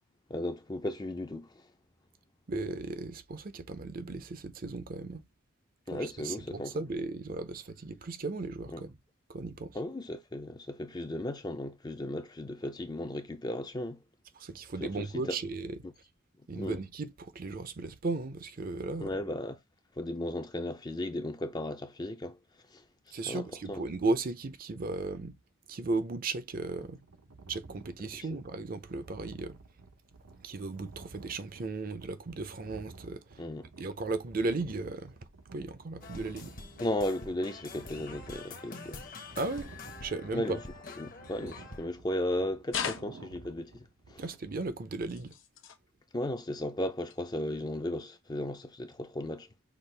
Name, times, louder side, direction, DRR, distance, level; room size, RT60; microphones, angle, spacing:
voice 1, 0.3-1.6 5.9-6.8 8.7-8.8 9.7-14.0 14.8-15.4 16.6-16.8 19.0-19.6 20.0-22.4 22.7-22.8 23.3-23.8 28.1-28.4 33.4-33.7 36.8-39.0 40.3-40.6 41.0-44.2 46.1-49.5, left 1 dB, 20° left, 0.4 m, -35 dB
voice 2, 2.5-5.2 5.9-9.0 9.3-9.8 14.4-15.8 16.5-19.1 23.1-25.3 25.7-27.0 27.5-29.6 30.4-33.2 33.8-35.1 35.5-36.5 39.4-39.7 40.0-40.6 44.2-45.3, right 3 dB, 45° right, 0.5 m, -35 dB
sound 1, 26.5-44.7, right 3 dB, 80° right, 0.8 m, -53 dB
sound 2, 36.0-41.9, left 3 dB, 40° left, 0.8 m, -46 dB
sound 3, 42.7-43.6 45.0-45.8 47.1-47.2 48.0-48.1, left 7 dB, 70° left, 0.8 m, -38 dB
5.9 x 2.4 x 3.3 m
head